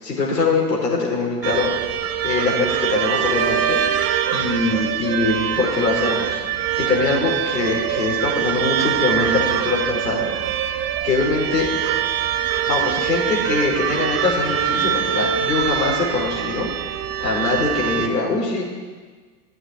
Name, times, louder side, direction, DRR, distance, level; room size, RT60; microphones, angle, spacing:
voice 1, 0.0-1.7 2.2-3.8 4.3-10.3 10.5-10.7 11.0-11.7 12.6-16.7 17.2-18.6, left 3 dB, 80° left, -3 dB, 4.8 m, -22 dB
sound 1, 1.4-18.1, right 9 dB, 30° right, 1.0 m, -23 dB
13.0 x 7.8 x 9.0 m, 1.5 s
figure-of-eight pair, 90°, 48 cm